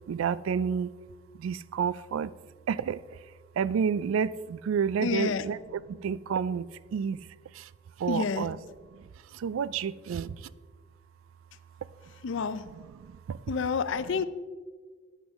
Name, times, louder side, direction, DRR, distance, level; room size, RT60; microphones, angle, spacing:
voice 1, 0.1-0.9 1.4-2.4 2.7-3.2 3.6-7.3 7.5-7.7 8.0-8.6 8.9-10.5 12.7-13.4 14.0-14.2, right 7 dB, 85° right, 19 dB, 0.3 m, -30 dB
voice 2, 5.0-5.4 8.1-8.5 12.2-12.6 13.5-14.2, left 5 dB, 65° left, 13 dB, 0.5 m, -29 dB
10.5 x 8.0 x 3.5 m, 1.5 s
head